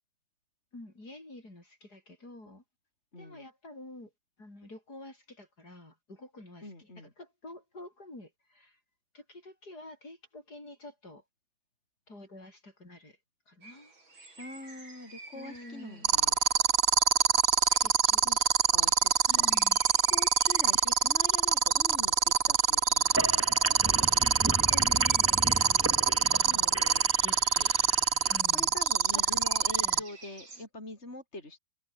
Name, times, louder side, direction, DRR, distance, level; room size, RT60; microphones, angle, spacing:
voice 1, 0.7-2.6 3.2-4.1 4.4-8.8 9.1-11.2 12.1-13.2 13.5-13.9 15.3-16.1 17.7-18.2 19.3-19.8 24.7-25.9 26.2-26.8 27.2-27.7 28.3-28.8 29.1-29.2 29.8-30.0, left 2 dB, 50° left, 8.5 m, -48 dB
voice 2, 3.1-3.4 6.6-7.1 14.4-16.4 18.2-18.4 18.7-19.1 19.4-19.5 20.1-22.1 22.5-23.5 26.5-27.1 28.5-31.6, left 2 dB, 30° left, 5.6 m, -44 dB
sound 1, 13.6-30.7, right 3 dB, 70° right, 6.9 m, -51 dB
sound 2, 16.0-30.0, right 7 dB, 45° right, 0.8 m, -23 dB
sound 3, 23.0-28.4, right 1 dB, 10° right, 0.8 m, -36 dB
omnidirectional pair, 2.2 m